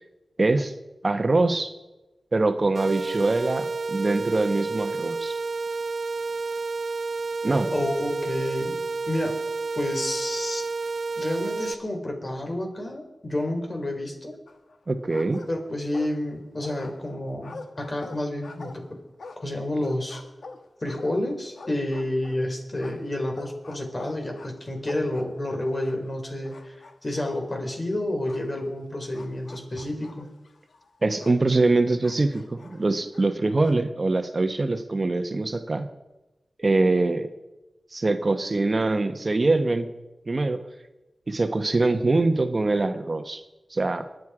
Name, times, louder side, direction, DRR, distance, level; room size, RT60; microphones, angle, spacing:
voice 1, 0.4-0.7 1.0-1.7 2.3-5.4 7.4-7.7 14.9-15.4 31.0-35.9 36.6-37.3 37.9-39.9 40.3-40.6 41.3-43.4 43.7-44.1, right 2 dB, 50° right, 8 dB, 1.2 m, -23 dB
sound 1, 2.7-11.7, right 3 dB, 75° right, 0.6 m, -30 dB
voice 2, 7.7-8.8 9.1-9.4 9.7-10.6 11.2-14.3 15.5-18.8 19.4-20.2 20.8-30.3, left 1 dB, 45° left, 2 dB, 4.2 m, -30 dB
sound 2, 14.5-14.8 15.1-16.3 16.6-22.4 22.8-26.2 26.4-27.3 28.3-28.5 29.1-31.4 32.0-33.8, left 3 dB, 80° left, 1.3 m, -45 dB
23.5 x 9.4 x 5.0 m, 1.0 s
cardioid pair, 50°, 0 cm